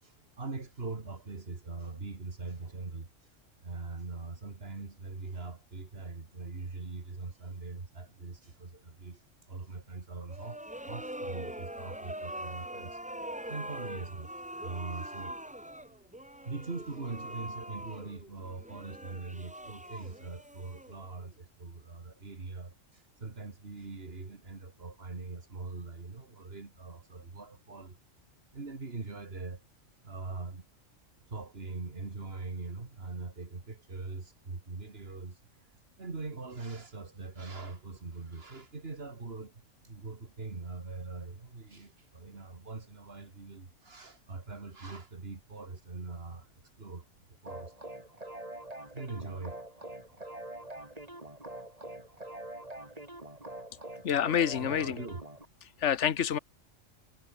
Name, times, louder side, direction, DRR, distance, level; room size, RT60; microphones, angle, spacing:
voice 1, 0.0-13.1 13.3-14.3 14.6-15.4 16.4-28.0 28.5-29.6 30.0-30.7 31.3-48.0 48.9-49.6 54.5-55.2, right 3 dB, 50° right, 2.6 m, -42 dB
sound 1, 10.3-21.3, right 1 dB, 5° right, 1.4 m, -43 dB
sound 2, 47.5-55.5, right 1 dB, 30° right, 4.4 m, -44 dB
voice 2, 54.0-55.0 55.8-56.4, left 9 dB, 65° left, 1.4 m, -27 dB
omnidirectional pair, 1.3 m